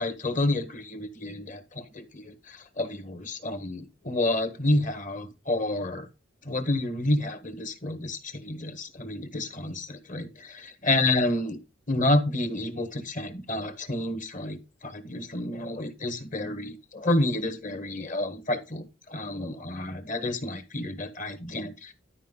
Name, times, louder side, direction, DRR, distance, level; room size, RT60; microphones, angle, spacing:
voice 1, 0.0-6.1 6.4-11.6 11.9-21.9, left 1 dB, 40° left, 1.6 m, -29 dB
12.0 x 5.2 x 4.0 m
head